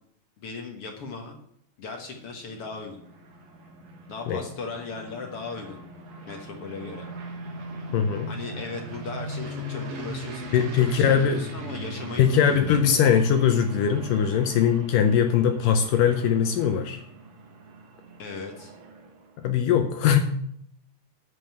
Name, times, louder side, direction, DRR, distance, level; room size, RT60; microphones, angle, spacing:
voice 1, 0.4-1.4 1.8-3.0 4.1-5.8 6.3-7.1 8.3-13.2 18.2-18.7, left 4 dB, 55° left, 2 dB, 1.7 m, -37 dB
sound 1, 2.2-19.4, right 1 dB, 55° right, 2.5 m, -40 dB
voice 2, 7.9-8.3 10.5-11.4 12.2-17.0 19.4-20.2, left 8 dB, 75° left, 6 dB, 2.2 m, -21 dB
11.0 x 5.3 x 7.6 m, 0.68 s
omnidirectional pair, 4.2 m